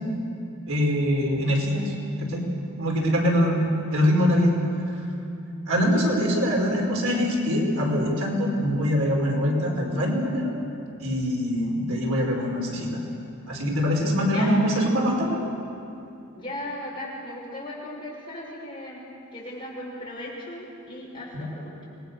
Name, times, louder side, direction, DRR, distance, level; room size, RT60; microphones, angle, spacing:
voice 1, 0.7-1.8 2.2-2.4 2.8-4.5 5.7-10.5 11.0-12.9 13.5-15.4 21.3-21.4, equal, 80° right, -1 dB, 5.1 m, -23 dB
voice 2, 14.2-14.7 16.3-19.0 19.3-22.0, left 1 dB, 25° left, -4 dB, 6.3 m, -37 dB
27.0 x 21.0 x 6.7 m, 2.7 s
head